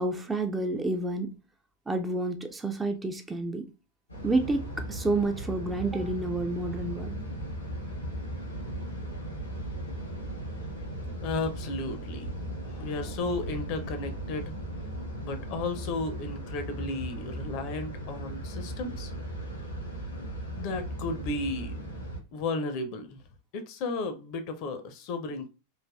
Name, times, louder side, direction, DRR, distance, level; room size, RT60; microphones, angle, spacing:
voice 1, 0.0-1.4 1.9-3.7 4.2-7.2, right 2 dB, 10° right, 0.3 m, -29 dB
sound 1, 4.1-22.2, right 1 dB, 85° left, 1.1 m, -37 dB
voice 2, 11.2-14.5 15.2-19.1 20.6-21.8 22.3-23.2 23.5-25.5, left 3 dB, 45° left, 0.5 m, -34 dB
3.2 x 2.3 x 2.3 m
figure-of-eight pair, 90°, 0 cm